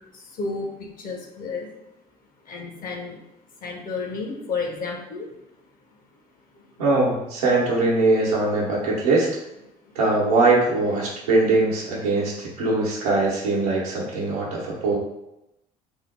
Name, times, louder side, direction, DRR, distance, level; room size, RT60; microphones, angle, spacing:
voice 1, 0.1-1.7 2.4-3.2 3.6-5.3, left 4 dB, 50° left, 1 dB, 0.9 m, -31 dB
voice 2, 6.8-9.3 9.9-15.0, right 2 dB, 90° right, -4 dB, 0.9 m, -21 dB
3.6 x 2.0 x 3.2 m, 0.87 s
hypercardioid pair, 60°, 18 cm